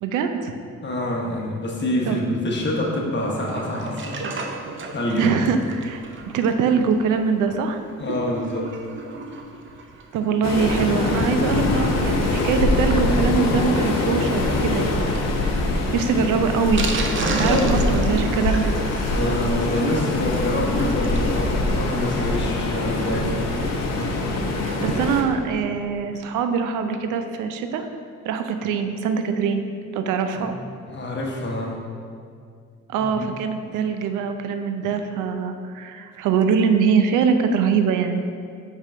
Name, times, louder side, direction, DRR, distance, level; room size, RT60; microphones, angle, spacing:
voice 1, 0.0-0.5 2.1-2.2 5.2-7.8 10.1-15.2 15.9-16.9 17.3-18.8 24.6-27.9 28.3-29.6 29.9-30.6 32.9-38.2, right 6 dB, 90° right, 7 dB, 0.5 m, -23 dB
voice 2, 0.8-4.3 4.9-5.3 8.0-8.7 15.9-16.3 17.2-17.8 19.1-23.5 30.3-30.4 30.9-31.7 33.0-33.3, left 1 dB, 35° left, -2 dB, 1.2 m, -26 dB
Sink (filling or washing), 3.3-21.4 21.7-21.8 22.0-22.1 22.4-22.5, right 3 dB, 40° right, 0.6 m, -35 dB
Waves surf, 10.4-25.2, left 2 dB, 60° left, 0.8 m, -23 dB
4.9 x 3.7 x 5.5 m, 2.2 s
cardioid pair, 90°, 30 cm